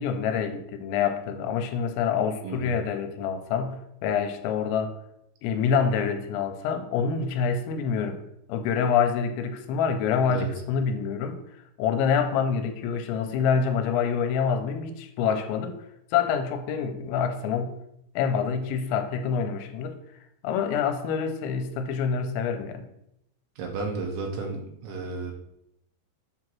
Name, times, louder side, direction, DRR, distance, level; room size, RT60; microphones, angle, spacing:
voice 1, 0.0-5.0 5.4-8.2 8.5-11.4 11.8-15.8 16.1-17.8 18.2-20.0 20.4-22.9, left 6 dB, 85° left, 7 dB, 2.9 m, -26 dB
voice 2, 2.4-2.7 10.3-10.5 23.6-25.3, right 3 dB, 80° right, 2 dB, 3.5 m, -33 dB
7.8 x 2.9 x 6.0 m, 0.80 s
omnidirectional pair, 5.3 m